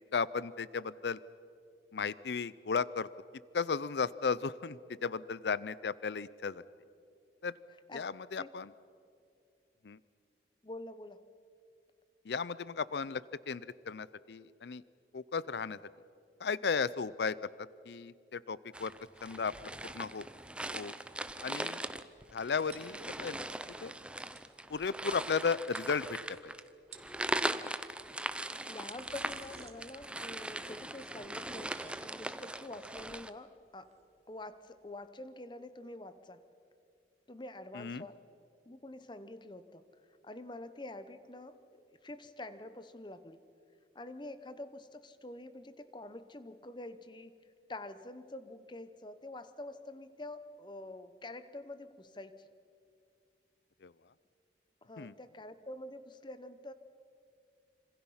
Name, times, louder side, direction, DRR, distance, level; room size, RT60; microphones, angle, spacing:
voice 1, 0.1-1.2 1.9-3.1 3.5-6.6 7.4-7.6 7.9-8.7 9.8-10.0 12.2-14.8 15.1-15.8 16.4-18.9 19.2-20.3 20.7-20.9 21.4-21.8 22.3-23.4 23.8-23.9 24.7-26.5 37.7-38.1 53.8-53.9 55.0-55.1, left 5 dB, 70° left, 19 dB, 0.5 m, -35 dB
voice 2, 10.6-11.2 28.7-33.9 34.3-36.4 37.3-38.2 38.7-39.8 40.2-43.4 43.9-47.3 47.7-52.5 54.8-56.7, left 2 dB, 25° left, 12 dB, 0.9 m, -47 dB
sound 1, 18.7-33.3, right 1 dB, 5° right, 0.5 m, -40 dB
sound 2, 22.7-23.6 23.9-24.0 24.2-24.6 25.4-25.5 25.7-26.4 26.8-27.3 28.4-35.1, right 6 dB, 40° right, 1.6 m, -58 dB
26.5 x 26.0 x 5.7 m, 2.5 s
head